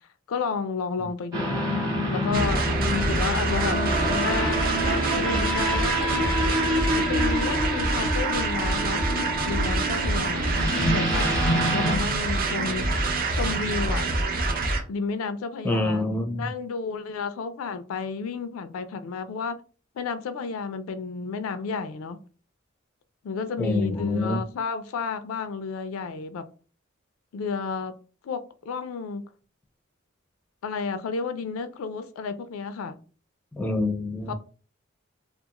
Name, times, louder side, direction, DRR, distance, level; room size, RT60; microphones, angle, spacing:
voice 1, 0.3-1.6 2.1-2.6 3.1-3.8 4.2-6.4 6.9-12.9 13.3-14.0 14.9-19.6 20.0-22.2 23.2-26.4 27.3-27.9 28.2-29.2 30.6-33.0 34.3-34.4, left 5 dB, 80° left, 0.4 m, -32 dB
sound 1, 1.3-11.9, equal, 20° right, 0.9 m, -27 dB
sound 2, 2.3-14.8, right 2 dB, 45° right, 0.5 m, -26 dB
voice 2, 15.6-16.5 23.6-24.4 33.5-34.3, left 2 dB, 10° left, 0.4 m, -26 dB
2.4 x 2.4 x 2.9 m
head